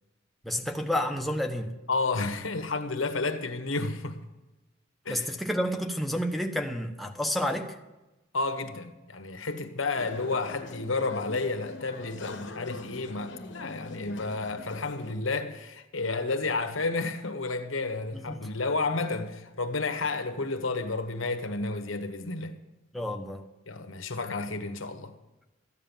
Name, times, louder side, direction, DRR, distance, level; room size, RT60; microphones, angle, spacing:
voice 1, 0.4-1.7 5.1-7.7 18.1-18.4 22.9-23.4, equal, ahead, 1.0 m, -30 dB
voice 2, 1.9-4.2 5.0-5.3 8.3-22.5 23.7-25.1, left 3 dB, 90° left, 1.3 m, -31 dB
sound 1, 9.9-15.2, left 2 dB, 65° left, 1.1 m, -42 dB
14.5 x 9.7 x 7.2 m
head